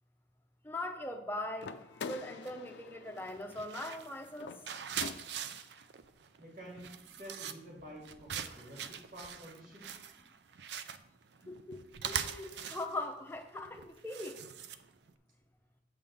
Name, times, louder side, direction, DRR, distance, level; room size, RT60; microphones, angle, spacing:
voice 1, 0.6-1.7 2.0-4.5 11.5-11.8 12.1-14.3, left 1 dB, 10° left, 4 dB, 0.7 m, -40 dB
sound 1, 1.6-5.7, left 5 dB, 80° left, 0.4 m, -47 dB
sound 2, 2.4-2.7 3.2-15.1, right 8 dB, 75° right, 0.4 m, -43 dB
voice 2, 6.4-9.9, equal, 50° right, -2 dB, 1.9 m, -50 dB
7.7 x 3.7 x 6.5 m, 0.83 s
head